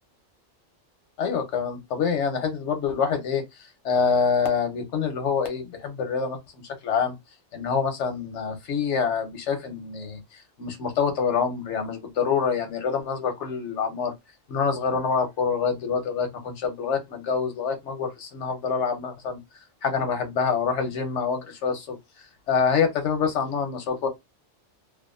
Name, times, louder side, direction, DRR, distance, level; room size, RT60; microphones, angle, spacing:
voice 1, 1.2-3.4 3.8-7.1 7.5-14.1 14.5-19.4 19.8-22.0 22.5-24.1, left 6 dB, 90° left, 1.1 m, -26 dB
2.7 x 2.4 x 2.3 m
omnidirectional pair, 1.2 m